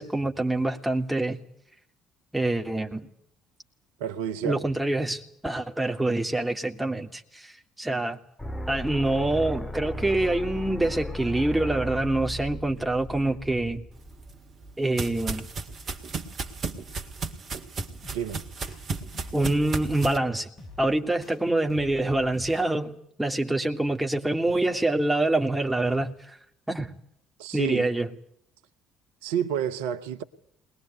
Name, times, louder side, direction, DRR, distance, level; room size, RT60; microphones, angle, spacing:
voice 1, 0.0-1.4 2.3-3.1 4.4-8.2 8.7-13.8 14.8-15.5 19.3-20.5 20.8-22.9 23.2-26.4 26.7-26.9 27.5-28.1, right 2 dB, 10° right, 2.9 m, -26 dB
voice 2, 4.0-4.6 18.1-18.4 27.4-27.9 29.2-30.2, right 9 dB, 75° right, 0.9 m, -29 dB
sound 1, 8.4-14.4, equal, 10° left, 2.1 m, -36 dB
sound 2, 14.1-20.2, right 4 dB, 45° right, 2.2 m, -35 dB
sound 3, 18.0-18.8 19.1-20.1 20.6-21.4 21.7-22.7, left 3 dB, 40° left, 6.0 m, -45 dB
21.0 x 21.0 x 9.4 m
figure-of-eight pair, 50°, 0 cm